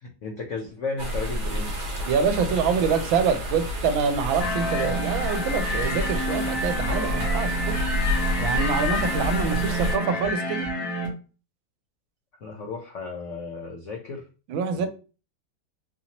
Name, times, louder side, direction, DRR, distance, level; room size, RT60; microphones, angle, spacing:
voice 1, 0.0-1.9 9.3-9.9 12.4-14.3 14.7-14.9, left 3 dB, 85° left, 1 dB, 0.6 m, -35 dB
sound 1, 1.0-10.0, left 1 dB, 55° right, 0.5 m, -29 dB
voice 2, 2.1-7.8 8.4-10.7 14.5-14.9, right 6 dB, 80° right, 9 dB, 1.4 m, -25 dB
sound 2, 4.4-11.1, equal, 55° left, 1.7 m, -29 dB
4.3 x 2.8 x 2.8 m, 0.34 s
omnidirectional pair, 2.2 m